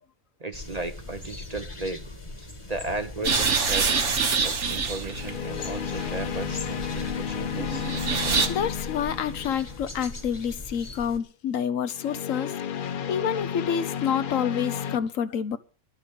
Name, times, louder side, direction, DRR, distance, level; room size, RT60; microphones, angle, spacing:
voice 1, 0.4-2.0 2.4-7.9, right 2 dB, 35° right, 0.9 m, -35 dB
sound 1, 0.5-11.2, left 2 dB, 20° left, 1.4 m, -40 dB
sound 2, 3.1-3.4 5.1-10.1 11.9-15.0, left 8 dB, 50° left, 0.7 m, -33 dB
sound 3, 3.2-8.5, right 5 dB, 60° right, 1.6 m, -27 dB
voice 2, 8.5-12.5 13.1-15.6, left 8 dB, 75° left, 1.2 m, -28 dB
11.5 x 6.2 x 8.6 m
omnidirectional pair, 1.4 m